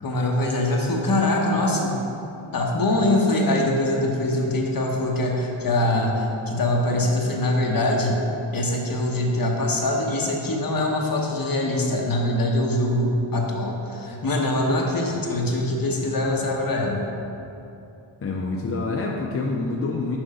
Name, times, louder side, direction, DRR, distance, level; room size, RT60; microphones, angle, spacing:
voice 1, 0.0-1.9 2.5-8.2 8.5-17.0, left 1 dB, 45° left, -1 dB, 1.0 m, -23 dB
voice 2, 18.2-20.2, left 3 dB, 30° left, -1 dB, 0.5 m, -27 dB
6.3 x 5.2 x 4.8 m, 2.8 s
wide cardioid pair, 150°, 47 cm